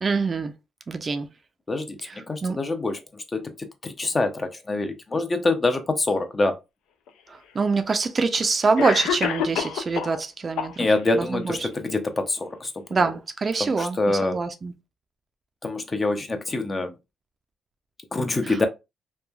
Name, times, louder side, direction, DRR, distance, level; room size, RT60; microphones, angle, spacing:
voice 1, 0.0-0.5 0.9-1.3 2.0-2.6 7.3-10.9 11.1-11.7 12.9-14.7 18.4-18.6, right 4 dB, 35° right, 0.4 m, -25 dB
voice 2, 1.7-6.6 10.8-13.1 13.6-14.4 15.6-16.9 18.1-18.7, left 2 dB, 30° left, 0.5 m, -26 dB
Cough, 7.1-7.2 8.2-8.3 8.8-10.2 10.6-11.2, left 8 dB, 90° left, 0.4 m, -28 dB
3.0 x 2.2 x 2.2 m
cardioid pair, 90°, 0 cm